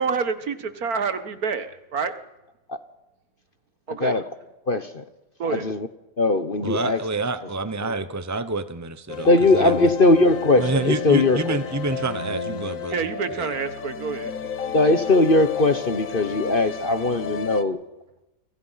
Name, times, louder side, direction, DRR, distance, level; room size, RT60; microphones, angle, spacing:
voice 1, 0.0-2.2 3.9-4.1 5.4-5.7 12.9-14.3 14.7-14.8, right 5 dB, 60° right, 10 dB, 1.8 m, -27 dB
voice 2, 3.9-4.3 4.7-5.0 5.5-5.9 6.2-7.0 7.8-7.9 9.2-11.6 14.7-17.8, left 2 dB, 35° left, 10 dB, 1.1 m, -20 dB
voice 3, 6.6-9.9 10.6-13.0 13.4-13.5, right 2 dB, 25° right, 11 dB, 0.4 m, -28 dB
sound 1, 9.1-17.6, left 6 dB, 55° left, 1.5 m, -31 dB
29.5 x 23.5 x 5.8 m, 1.0 s
omnidirectional pair, 1.9 m